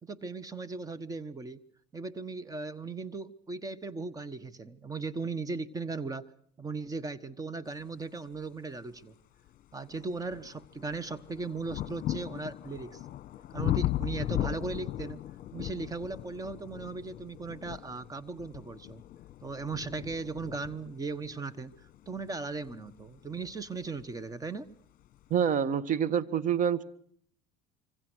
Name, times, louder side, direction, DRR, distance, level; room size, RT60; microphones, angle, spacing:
voice 1, 0.0-1.6 1.9-6.3 6.6-9.1 9.7-13.0 13.5-15.2 15.5-19.0 19.4-21.7 22.1-24.7, right 4 dB, 20° right, 1.4 m, -37 dB
sound 1, 8.8-8.9 9.5-24.2 25.1-25.2, left 14 dB, 50° left, 1.3 m, -38 dB
voice 2, 25.3-26.8, right 8 dB, 50° right, 1.7 m, -27 dB
26.0 x 25.0 x 6.4 m
supercardioid pair, 100°, 17 cm